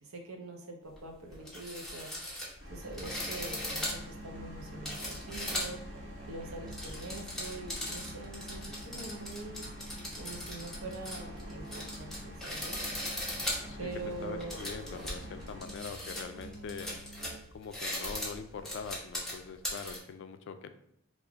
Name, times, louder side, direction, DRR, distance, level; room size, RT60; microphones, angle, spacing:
voice 1, 0.0-2.1 2.7-6.0 6.2-9.6 10.2-12.8 13.8-14.6, right 2 dB, 85° right, 2 dB, 0.8 m, -44 dB
sound 1, 0.9-1.0 1.3-5.9 6.5-20.0, left 1 dB, ahead, 0.9 m, -39 dB
sound 2, 2.6-15.6, equal, 65° right, 1.2 m, -48 dB
Musical instrument, 2.9-17.6, right 1 dB, 35° right, 0.4 m, -49 dB
voice 2, 14.2-17.0 17.5-20.7, left 5 dB, 60° left, 9 dB, 0.3 m, -43 dB
3.5 x 2.5 x 3.4 m, 0.74 s
head